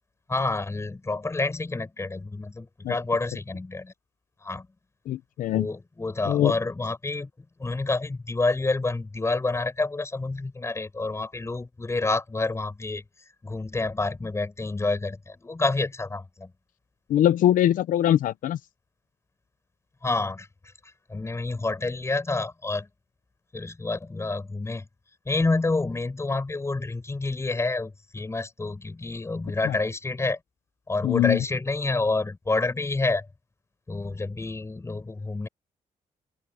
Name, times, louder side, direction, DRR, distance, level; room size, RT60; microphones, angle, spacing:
voice 1, 0.3-3.9 4.4-4.7 5.5-7.3 7.6-13.0 13.4-16.5 20.0-20.5 21.1-22.9 23.5-24.9 25.3-30.4 30.9-33.3 33.9-35.5, left 3 dB, 20° left, 7.9 m, -28 dB
voice 2, 5.1-5.7 6.3-6.5 17.1-18.6 29.6-29.8 31.0-31.4, left 12 dB, 90° left, 0.8 m, -22 dB
open air
cardioid pair, 115°, 14 cm